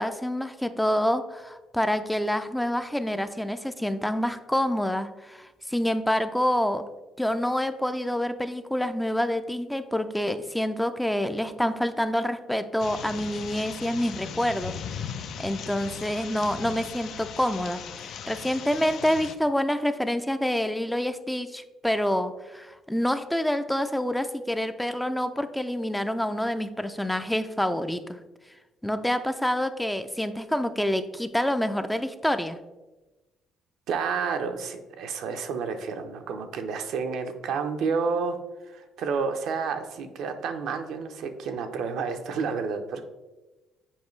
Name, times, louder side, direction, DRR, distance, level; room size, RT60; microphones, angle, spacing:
voice 1, 0.0-6.9 7.2-14.8 15.4-28.2 28.8-32.6, equal, 5° left, 9 dB, 0.4 m, -27 dB
sound 1, 12.8-19.4, left 8 dB, 70° left, 0.4 m, -38 dB
voice 2, 33.9-38.4 38.7-43.0, right 5 dB, 75° right, 6 dB, 0.6 m, -30 dB
7.2 x 4.6 x 3.2 m, 1.1 s
cardioid pair, 90°, 0 cm